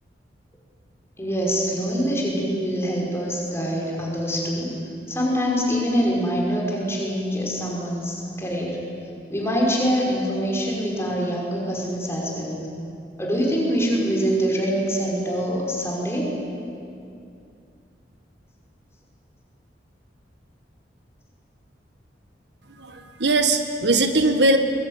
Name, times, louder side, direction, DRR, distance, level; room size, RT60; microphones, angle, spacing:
voice 1, 1.2-4.7 5.1-8.8 9.3-12.7 13.2-16.4, equal, 15° left, -2 dB, 5.6 m, -24 dB
voice 2, 22.8-24.6, right 2 dB, 70° right, 6 dB, 1.7 m, -20 dB
23.0 x 22.0 x 9.8 m, 2.5 s
head